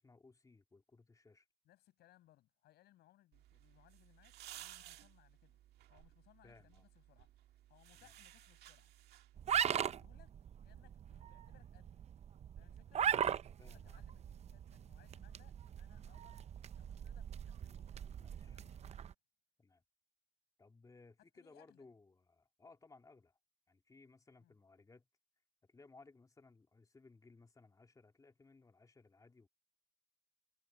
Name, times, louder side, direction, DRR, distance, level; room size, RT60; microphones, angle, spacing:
voice 1, 0.0-1.5 6.4-6.9 7.9-8.1 13.6-14.0 18.2-18.6 19.6-19.8 20.6-23.4 23.7-25.1 25.6-29.5, left 3 dB, 20° left, 3.2 m, -62 dB
voice 2, 1.6-5.6 5.9-7.3 7.7-8.9 9.6-10.4 10.6-12.1 12.6-13.1 13.6-16.4 16.8-17.9 18.3-19.0 21.4-21.9 24.4-24.6, left 14 dB, 75° left, 7.6 m, -69 dB
sound 1, 3.3-9.5, right 13 dB, 75° right, 1.8 m, -57 dB
sound 2, 9.4-19.1, right 9 dB, 40° right, 0.6 m, -40 dB
cardioid pair, 110°, 17 cm